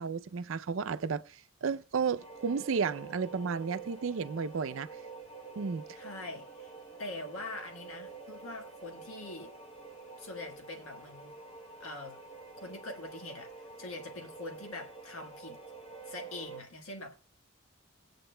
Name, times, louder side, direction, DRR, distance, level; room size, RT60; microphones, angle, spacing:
voice 1, 0.0-4.9 5.6-5.8, right 5 dB, 70° right, 0.5 m, -33 dB
sound 1, 2.2-16.6, right 4 dB, 30° left, 1.1 m, -48 dB
voice 2, 5.9-6.7 7.0-9.5 10.2-11.3 11.8-12.2 12.6-15.6 16.0-17.1, left 2 dB, 90° left, 1.5 m, -43 dB
18.5 x 8.6 x 2.2 m
head